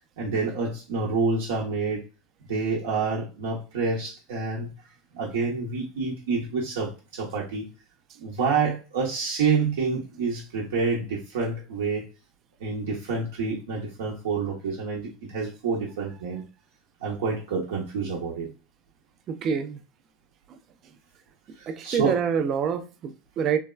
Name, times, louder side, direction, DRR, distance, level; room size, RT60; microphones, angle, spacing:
voice 1, 0.2-2.0 2.4-4.7 5.1-7.7 8.2-12.1 12.6-16.4 17.0-18.5 21.6-22.2, right 4 dB, 80° right, 0.7 m, -28 dB
voice 2, 19.3-19.8 21.7-23.6, right 7 dB, 45° right, 0.4 m, -26 dB
3.3 x 2.2 x 2.2 m
hypercardioid pair, 100°, 0 cm